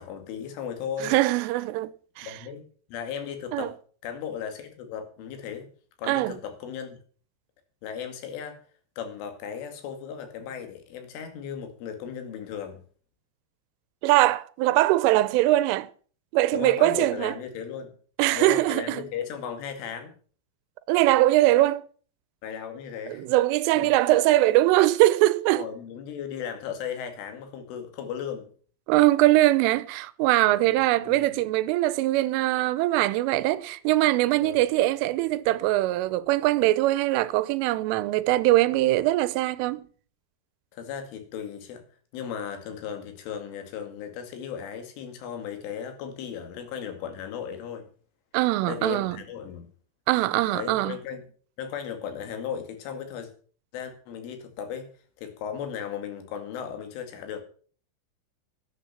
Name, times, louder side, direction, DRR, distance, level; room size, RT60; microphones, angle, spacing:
voice 1, 0.0-1.1 2.2-2.6 2.9-3.7 4.0-5.7 6.0-7.0 7.8-8.6 9.0-12.8 16.5-17.9 18.3-20.1 22.4-23.3 23.7-23.9 25.6-28.5 30.5-31.3 34.3-34.6 40.7-41.8 42.1-47.9 48.7-49.7 50.5-51.2 51.6-53.3 53.7-54.9 55.2-57.4, left 8 dB, 80° left, 4.7 m, -36 dB
voice 2, 1.0-2.3 3.5-3.7 6.1-6.3 14.0-15.9 16.3-17.4 18.2-19.1 20.9-21.8 23.1-25.7 28.9-39.9 48.3-49.2 50.1-51.0, right 16 dB, 90° right, 3.3 m, -22 dB
11.5 x 10.0 x 7.1 m
omnidirectional pair, 5.6 m